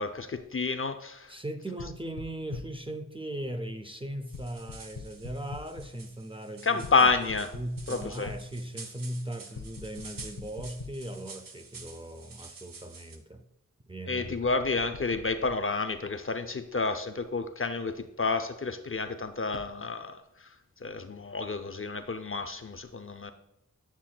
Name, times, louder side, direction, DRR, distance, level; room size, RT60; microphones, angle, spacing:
voice 1, 0.0-1.3 6.6-7.5 7.9-8.3 14.1-20.5 20.8-23.3, left 4 dB, 40° left, 8 dB, 0.5 m, -30 dB
voice 2, 1.3-7.1 7.5-13.4 13.9-14.4, right 1 dB, 15° right, 7 dB, 0.5 m, -38 dB
sound 1, 1.8-2.9 4.3-6.0 6.8-8.5 9.5-11.2 11.8-11.9 14.2-15.6 19.5-19.7, left 4 dB, 85° left, 0.6 m, -44 dB
sound 2, 4.3-13.2, right 4 dB, 85° right, 0.7 m, -49 dB
7.4 x 7.2 x 2.2 m, 0.85 s
wide cardioid pair, 50°, 33 cm